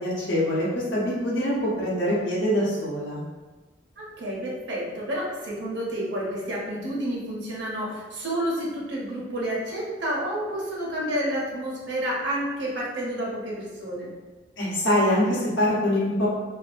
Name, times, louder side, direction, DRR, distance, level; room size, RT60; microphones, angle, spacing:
voice 1, 0.0-3.2 14.6-16.3, equal, 75° left, -6 dB, 0.9 m, -24 dB
voice 2, 4.0-14.1, right 1 dB, 70° right, -5 dB, 0.9 m, -30 dB
2.6 x 2.4 x 2.5 m, 1.3 s
head